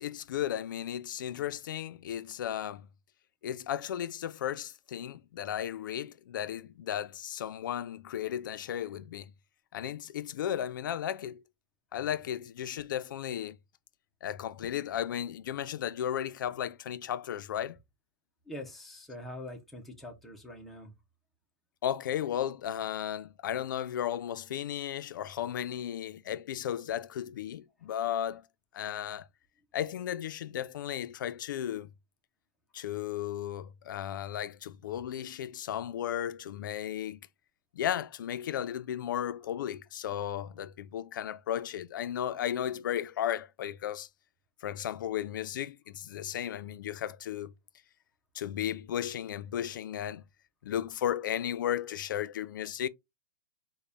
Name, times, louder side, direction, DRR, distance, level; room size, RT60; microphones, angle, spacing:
voice 1, 0.0-2.9 3.4-9.3 9.7-11.4 11.9-13.6 14.2-17.8 21.8-28.4 28.7-29.3 29.7-31.9 32.7-37.2 37.7-44.1 44.6-47.5 48.3-50.2 50.6-52.9, left 10 dB, 75° left, 0.4 m, -35 dB
voice 2, 18.5-20.9, left 1 dB, ahead, 0.4 m, -44 dB
3.9 x 2.1 x 3.3 m
supercardioid pair, 175°, 11 cm